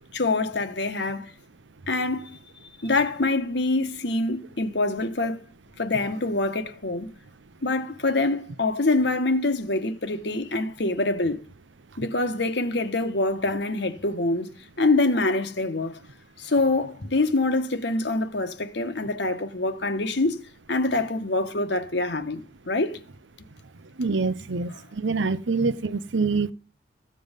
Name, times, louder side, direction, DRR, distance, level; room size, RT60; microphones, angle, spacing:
voice 1, 0.1-1.3 1.9-2.4 2.8-5.4 5.8-7.1 7.6-11.4 12.0-14.5 14.8-16.0 16.4-20.4 20.7-23.0, left 2 dB, 70° left, 1.4 m, -25 dB
voice 2, 24.0-26.5, right 4 dB, 85° right, 0.8 m, -25 dB
15.0 x 7.8 x 5.2 m
head